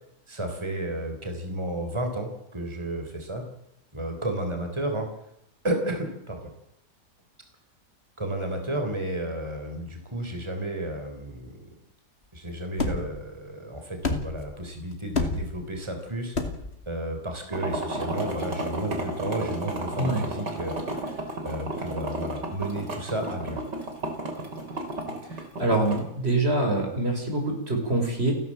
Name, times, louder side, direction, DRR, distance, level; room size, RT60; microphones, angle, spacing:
voice 1, 0.3-3.5 3.9-5.1 5.6-6.5 8.2-11.7 12.3-16.4 16.9-23.6, right 1 dB, 15° right, 5 dB, 3.8 m, -32 dB
sound 1, 12.8-13.2 14.0-14.5 15.1-15.6 16.3-16.8, left 3 dB, 40° left, 2.5 m, -28 dB
sound 2, 17.5-26.0, right 1 dB, 80° right, 4.1 m, -32 dB
voice 2, 25.6-28.3, right 2 dB, 35° right, 2 dB, 6.0 m, -25 dB
30.0 x 11.5 x 7.6 m, 0.77 s
omnidirectional pair, 1.8 m